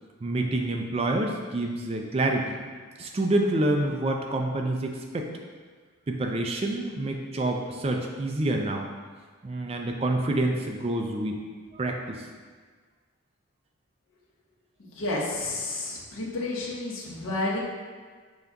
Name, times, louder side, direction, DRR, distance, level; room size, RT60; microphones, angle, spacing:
voice 1, 0.2-2.6 3.0-5.3 6.1-8.9 9.4-11.4 11.7-12.3, right 2 dB, 25° right, 2 dB, 0.3 m, -27 dB
voice 2, 14.8-17.6, left 2 dB, 65° left, -4 dB, 0.8 m, -31 dB
5.3 x 2.2 x 3.5 m, 1.5 s
head